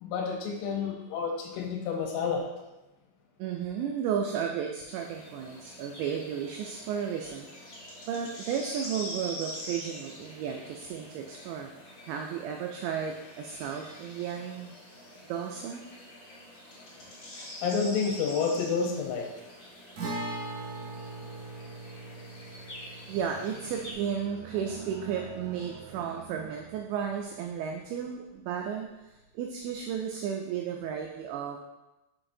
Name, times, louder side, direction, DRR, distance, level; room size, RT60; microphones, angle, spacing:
voice 1, 0.0-2.5 17.4-19.3, left 5 dB, 85° left, 0 dB, 3.5 m, -30 dB
voice 2, 3.4-7.5 8.1-11.7 12.0-14.8 15.3-15.8 23.1-28.9 29.3-31.6, right 7 dB, 90° right, 2 dB, 2.5 m, -33 dB
sound 1, 4.9-23.9, equal, 65° left, 1.7 m, -45 dB
Guitar, 20.0-27.6 27.8-27.9 30.0-30.1, right 2 dB, 70° right, 2.1 m, -41 dB
6.5 x 5.9 x 2.6 m, 1.0 s
omnidirectional pair, 5.7 m